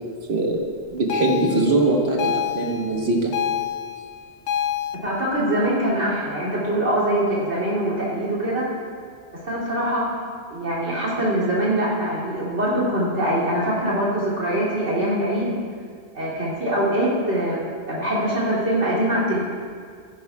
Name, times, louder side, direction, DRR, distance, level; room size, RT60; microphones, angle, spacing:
voice 1, 0.3-0.6 0.9-3.3, right 2 dB, 65° right, 0 dB, 1.5 m, -21 dB
sound 1, 1.1-5.0, left 9 dB, 85° left, 1.0 m, -27 dB
voice 2, 5.0-8.7 9.4-10.1 10.5-15.6 16.1-19.4, right 1 dB, 85° right, -6 dB, 3.1 m, -23 dB
14.5 x 10.5 x 2.3 m, 2.1 s
omnidirectional pair, 1.1 m